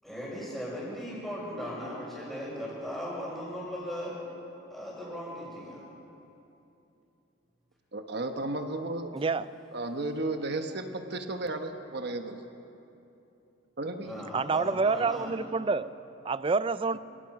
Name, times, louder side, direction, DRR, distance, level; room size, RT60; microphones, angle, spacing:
voice 1, 0.0-4.2 4.7-5.8 14.0-15.3, equal, ahead, -11 dB, 6.1 m, -38 dB
voice 2, 7.9-9.1 9.7-12.4 13.8-14.2, right 2 dB, 55° right, 6 dB, 1.2 m, -34 dB
voice 3, 9.1-9.5 14.3-15.9 16.2-17.0, right 4 dB, 25° right, 15 dB, 0.4 m, -27 dB
26.5 x 17.5 x 6.0 m, 2.9 s
head